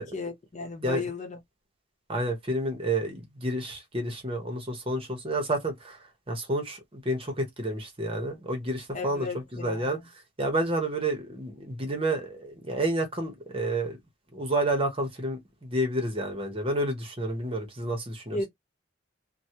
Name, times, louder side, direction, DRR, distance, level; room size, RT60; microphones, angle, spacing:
voice 1, 0.0-1.4 8.9-10.0 18.3-18.5, left 3 dB, 40° left, 1.1 m, -34 dB
voice 2, 2.1-6.0 6.3-9.3 9.5-10.0 10.4-14.0 14.3-18.4, right 1 dB, 30° right, 1.0 m, -30 dB
3.0 x 2.3 x 2.8 m
head